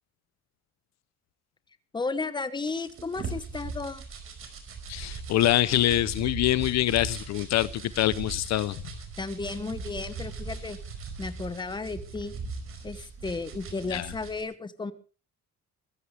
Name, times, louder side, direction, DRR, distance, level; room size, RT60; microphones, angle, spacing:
voice 1, 1.9-4.0 9.2-10.8 11.2-12.3 12.8-14.9, left 3 dB, 15° left, 13 dB, 1.2 m, -34 dB
sound 1, 2.7-14.4, right 4 dB, 45° right, 5.1 m, -39 dB
voice 2, 4.9-8.8 13.9-14.1, left 14 dB, 60° left, 18 dB, 0.7 m, -25 dB
23.0 x 15.5 x 3.4 m, 0.36 s
cardioid pair, 140°, 30 cm